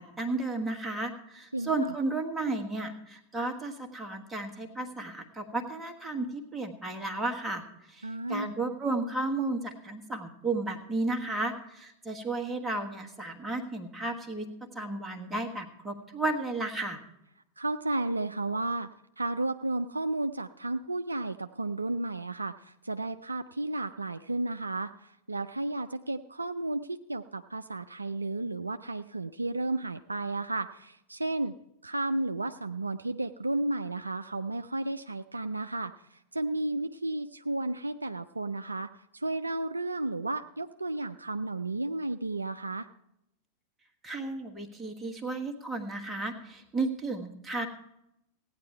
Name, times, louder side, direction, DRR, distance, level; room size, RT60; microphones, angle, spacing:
voice 1, 0.0-14.5 14.7-17.0 44.0-47.7, right 2 dB, 10° right, 2 dB, 1.4 m, -33 dB
voice 2, 1.5-1.9 8.0-8.5 17.6-18.9 19.2-31.5 31.8-42.9, right 2 dB, 80° right, 9 dB, 0.3 m, -33 dB
16.0 x 9.5 x 4.6 m, 0.83 s
figure-of-eight pair, 90°, 0 cm